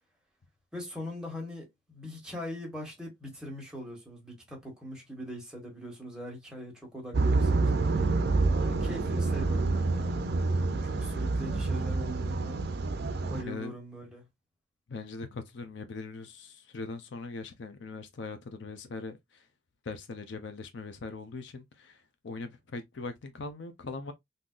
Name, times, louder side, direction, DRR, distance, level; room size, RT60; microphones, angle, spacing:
voice 1, 0.7-8.2 8.5-10.1 10.8-12.6 13.3-14.2, left 1 dB, 5° right, 1.4 m, -42 dB
sound 1, 7.1-13.4, right 3 dB, 55° right, 0.5 m, -27 dB
voice 2, 14.9-19.4 19.8-24.1, left 3 dB, 60° left, 0.5 m, -41 dB
3.7 x 2.7 x 2.4 m
head